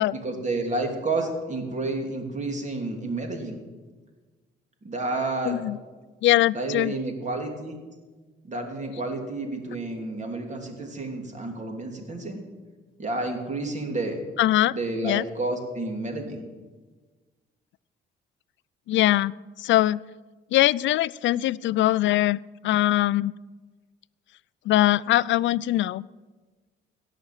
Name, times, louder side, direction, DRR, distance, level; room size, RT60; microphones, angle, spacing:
voice 1, 0.2-3.6 4.8-5.6 6.5-7.8 8.4-12.4 13.0-14.2 14.7-16.5, right 2 dB, 35° right, 3 dB, 3.0 m, -30 dB
voice 2, 5.5-5.8 6.2-6.9 14.4-14.7 15.0-15.2 18.9-19.3 19.6-20.0 20.5-22.4 22.6-23.3 24.7-26.0, left 14 dB, 70° left, 20 dB, 0.4 m, -21 dB
17.0 x 5.9 x 8.9 m, 1.3 s
cardioid pair, 90°, 20 cm